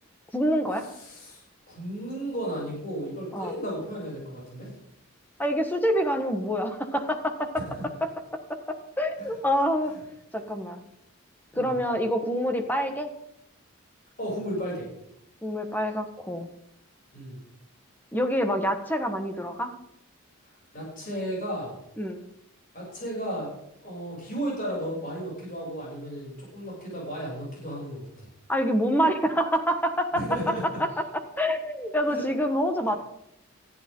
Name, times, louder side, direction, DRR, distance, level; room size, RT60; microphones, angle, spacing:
voice 1, 0.3-0.9 3.3-3.6 5.4-7.6 8.0-10.0 10.3-10.8 11.5-13.1 15.4-16.5 18.1-19.7 22.0-22.2 28.5-30.5 30.8-33.0, equal, 10° left, 6 dB, 1.5 m, -27 dB
voice 2, 1.0-4.7 9.2-9.3 11.5-11.7 14.2-14.9 17.1-17.4 20.7-21.7 22.7-23.5 23.8-28.1 30.1-30.8 32.1-32.2, equal, 40° left, -5 dB, 7.5 m, -34 dB
19.5 x 13.5 x 3.9 m, 0.78 s
head